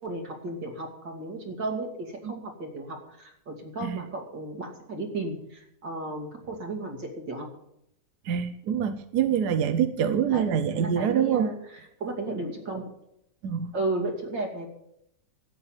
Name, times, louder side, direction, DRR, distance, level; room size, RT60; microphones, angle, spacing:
voice 1, 0.0-7.5 10.3-10.5 10.7-11.5 12.0-12.9 13.7-14.7, right 2 dB, 85° right, 2 dB, 3.3 m, -34 dB
voice 2, 8.2-11.5 13.4-13.7, right 8 dB, 70° right, 10 dB, 1.3 m, -25 dB
12.5 x 9.0 x 8.0 m, 0.76 s
omnidirectional pair, 1.9 m